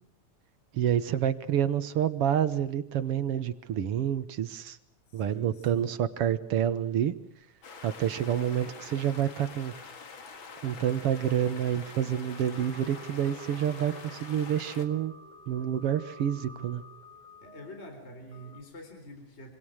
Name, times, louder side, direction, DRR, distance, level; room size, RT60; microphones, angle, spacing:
voice 1, 0.7-4.8 5.1-7.1 7.8-9.7 10.6-15.1 15.5-16.8, right 10 dB, 60° right, 13 dB, 1.9 m, -28 dB
voice 2, 5.1-5.9 16.4-16.7 17.4-19.6, equal, 20° left, 5 dB, 4.0 m, -47 dB
sound 1, 7.6-14.9, left 5 dB, 45° left, 2.6 m, -46 dB
sound 2, 12.2-18.6, equal, 10° right, 6.7 m, -51 dB
26.0 x 25.0 x 6.5 m, 0.72 s
omnidirectional pair, 3.4 m